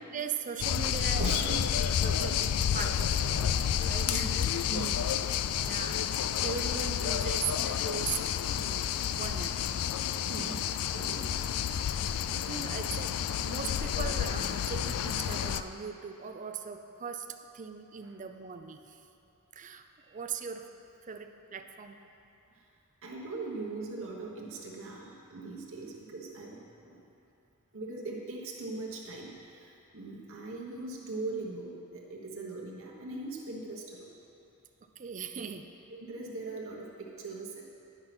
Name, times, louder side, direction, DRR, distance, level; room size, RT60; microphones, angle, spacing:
voice 1, 0.1-1.6 2.0-3.5 3.9-4.3 5.5-6.0 6.4-8.2 8.5-9.5 11.2-11.5 11.9-12.0 12.3-17.3 17.5-18.9 19.5-20.7 21.0-22.0 35.0-35.6, right 6 dB, 35° right, 7 dB, 0.5 m, -39 dB
sound 1, 0.6-15.6, left 9 dB, 85° left, 0.3 m, -30 dB
voice 2, 1.2-1.6 4.1-4.4 4.7-5.0 10.3-10.7 10.9-11.3 18.0-18.1 23.0-27.0 27.7-34.1 36.0-37.7, right 3 dB, 65° right, -3 dB, 1.2 m, -40 dB
10.5 x 5.6 x 5.9 m, 2.7 s
head